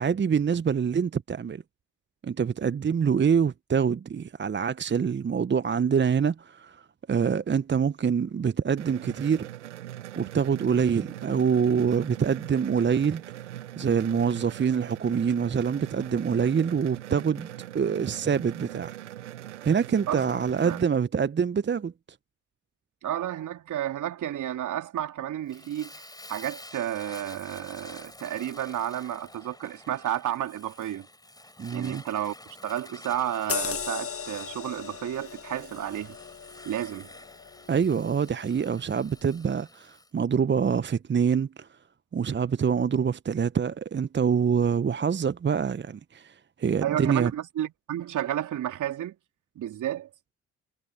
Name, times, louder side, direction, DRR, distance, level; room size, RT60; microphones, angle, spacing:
voice 1, 0.0-1.6 2.2-6.8 7.1-9.5 10.2-13.4 13.8-18.9 19.6-21.9 31.6-32.0 37.7-41.7 42.1-47.3, right 7 dB, 30° right, 1.0 m, -25 dB
sound 1, 8.8-20.8, right 13 dB, 85° right, 1.8 m, -41 dB
voice 2, 23.0-26.0 26.3-31.1 31.7-32.3 32.6-36.2 36.6-37.1 46.8-49.2 49.6-50.1, right 11 dB, 60° right, 3.9 m, -31 dB
Fire, 25.5-40.1, left 1 dB, 10° left, 5.5 m, -49 dB
sound 2, 33.5-38.5 38.9-39.1, left 7 dB, 40° left, 1.9 m, -37 dB
figure-of-eight pair, 40°, 34 cm